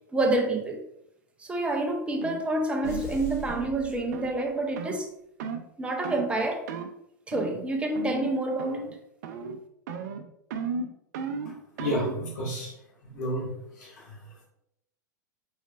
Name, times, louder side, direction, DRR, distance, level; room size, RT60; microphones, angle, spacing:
voice 1, 0.1-0.8 1.4-5.1 5.8-6.6 7.3-8.9, right 2 dB, 10° right, 3 dB, 0.8 m, -28 dB
sound 1, 2.2-2.4 2.8-3.1 3.5-3.7 4.1-4.3 4.8-5.0 5.4-5.7 6.0-6.3 6.7-6.9 7.3-7.7 7.9-8.3 8.6-9.0 9.2-9.6 9.9-12.2, right 5 dB, 60° right, 0.6 m, -35 dB
sound 2, 2.8-4.7, right 2 dB, 25° left, 1.2 m, -40 dB
voice 2, 11.5-12.7 13.0-14.4, equal, 65° left, -5 dB, 1.8 m, -33 dB
5.0 x 4.1 x 2.6 m, 0.76 s
figure-of-eight pair, 95°, 10 cm